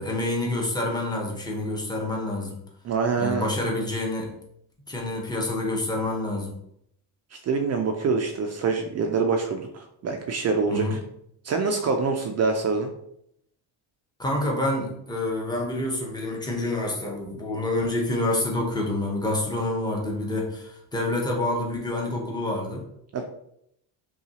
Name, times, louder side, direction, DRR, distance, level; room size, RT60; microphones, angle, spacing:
voice 1, 0.0-2.6 3.2-4.3 4.9-6.6 10.7-11.0 14.2-22.8, left 1 dB, 10° left, -1 dB, 0.8 m, -27 dB
voice 2, 2.8-3.5 7.4-11.0 11.4-12.9 23.1-23.2, right 4 dB, 35° right, 4 dB, 0.4 m, -25 dB
5.6 x 2.3 x 2.8 m, 0.74 s
cardioid pair, 140°, 46 cm